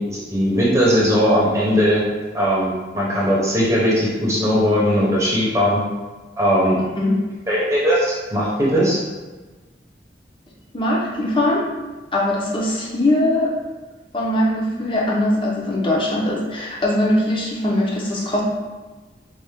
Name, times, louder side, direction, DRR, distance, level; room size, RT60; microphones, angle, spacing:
voice 1, 0.0-2.0 2.3-5.8 6.4-6.8 7.5-9.0, equal, 15° right, -6 dB, 0.8 m, -19 dB
voice 2, 10.7-11.7 12.1-13.5 14.1-18.4, left 1 dB, 30° left, -4 dB, 0.8 m, -21 dB
4.5 x 2.4 x 3.6 m, 1.3 s
head